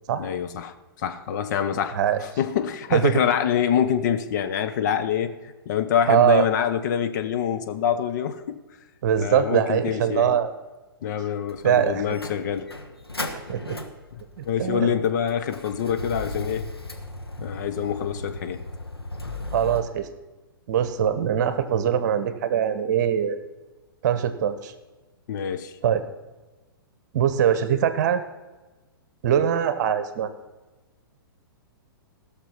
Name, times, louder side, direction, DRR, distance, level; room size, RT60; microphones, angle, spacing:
voice 1, 0.2-5.3 5.7-8.6 9.2-10.4 11.0-12.7 14.4-16.7 17.4-18.6 25.3-25.7, left 8 dB, 50° left, 9 dB, 0.9 m, -26 dB
voice 2, 6.1-6.5 9.0-10.5 11.6-12.0 13.5-13.8 14.4-15.0 19.5-20.1 20.7-23.4 24.0-24.7 25.8-26.0 27.1-28.2 29.2-30.3, right 9 dB, 50° right, 11 dB, 1.0 m, -22 dB
Motor vehicle (road), 11.5-19.8, left 2 dB, 90° left, 1.4 m, -37 dB
16.0 x 6.5 x 5.6 m, 1.2 s
figure-of-eight pair, 110°, 12 cm